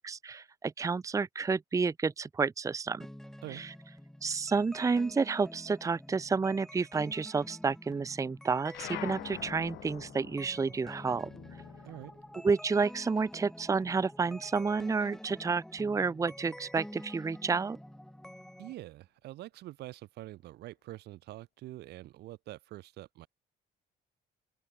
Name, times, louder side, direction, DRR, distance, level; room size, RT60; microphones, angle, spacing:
voice 1, 0.0-3.1 3.5-3.7 4.2-11.3 12.4-17.8, right 4 dB, 20° right, 0.8 m, -30 dB
sound 1, 3.0-18.7, equal, 5° left, 1.4 m, -48 dB
sound 2, 8.7-13.6 13.9-15.3, left 20 dB, 85° left, 0.9 m, -47 dB
voice 2, 18.6-23.3, right 16 dB, 75° right, 2.3 m, -45 dB
open air
cardioid pair, 110°, 17 cm